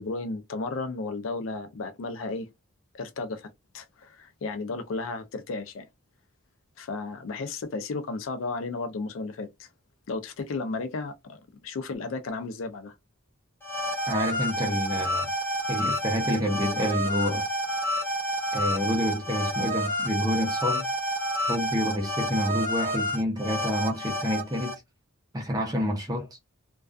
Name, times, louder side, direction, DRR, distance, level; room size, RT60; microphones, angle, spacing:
voice 1, 0.0-2.5 2.9-5.9 6.8-9.7 10.1-12.9, left 3 dB, 80° left, 0.4 m, -34 dB
sound 1, 13.6-24.7, equal, 10° left, 0.9 m, -29 dB
voice 2, 14.1-15.3 15.7-17.4 18.5-20.9 21.5-24.8 25.3-26.3, equal, 20° right, 0.5 m, -28 dB
2.3 x 2.3 x 2.4 m
head